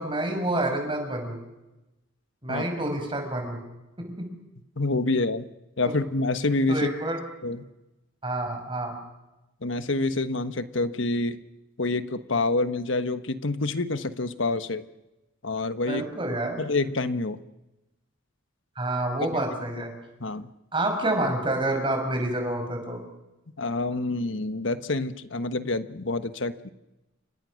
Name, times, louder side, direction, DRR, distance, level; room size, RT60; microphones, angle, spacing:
voice 1, 0.0-1.4 2.4-3.6 4.0-4.3 6.7-7.2 8.2-8.9 15.9-16.6 18.8-19.9 20.7-23.0, right 1 dB, 25° right, 4 dB, 6.0 m, -28 dB
voice 2, 4.8-5.5 5.8-6.9 7.4-7.6 9.6-11.4 11.8-14.8 15.4-16.0 16.6-17.4 20.2-20.5 23.6-26.7, left 2 dB, 65° left, 11 dB, 1.3 m, -27 dB
29.5 x 25.5 x 6.5 m, 0.99 s
head